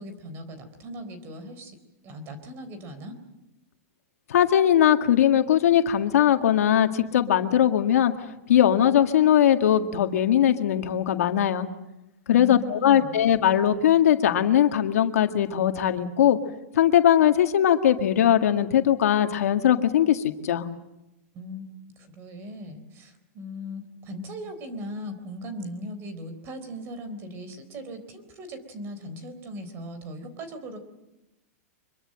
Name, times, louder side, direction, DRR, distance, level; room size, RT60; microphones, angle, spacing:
voice 1, 0.0-1.8 2.0-3.2 12.3-13.2 21.3-21.7 22.0-30.8, equal, 30° right, 10 dB, 3.8 m, -38 dB
voice 2, 4.3-8.1 8.5-11.7 12.3-16.4 16.7-20.7, left 10 dB, 80° left, 6 dB, 1.9 m, -20 dB
24.5 x 22.5 x 7.7 m, 0.94 s
supercardioid pair, 155°, 8 cm